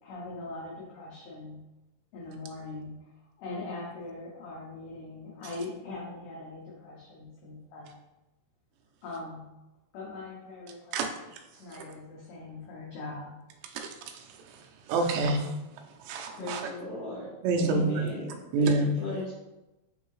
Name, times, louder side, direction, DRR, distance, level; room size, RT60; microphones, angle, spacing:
voice 1, 0.0-1.6 2.1-3.1 3.4-8.0 9.0-9.5 9.9-11.3 11.5-13.4, left 3 dB, 90° left, -5 dB, 1.9 m, -41 dB
voice 2, 10.9-11.4 13.7-15.5 16.0-16.7 17.4-18.1 18.5-19.0, right 3 dB, 85° right, 3 dB, 2.8 m, -28 dB
voice 3, 16.4-17.3 17.6-18.3 18.6-19.3, left 2 dB, 70° left, -6 dB, 2.0 m, -36 dB
6.3 x 2.7 x 3.1 m, 0.98 s
omnidirectional pair, 5.0 m